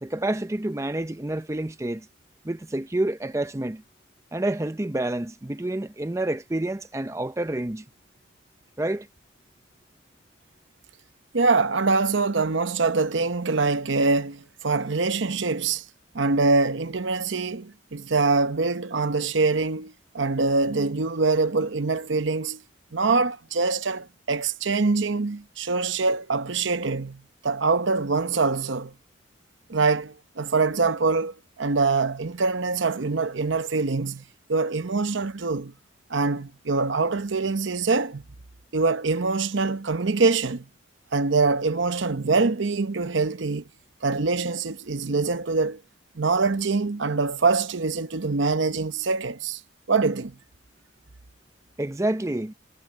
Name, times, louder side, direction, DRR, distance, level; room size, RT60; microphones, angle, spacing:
voice 1, 0.0-2.1 2.4-3.8 4.3-7.8 8.8-9.1 51.8-52.5, right 1 dB, 15° right, 0.5 m, -28 dB
voice 2, 11.3-15.8 16.1-22.6 22.9-28.9 29.7-34.2 34.5-35.7 36.1-38.2 38.7-40.6 41.1-43.6 44.0-45.8 46.2-49.6 49.9-50.3, right 3 dB, 65° right, 0.8 m, -24 dB
head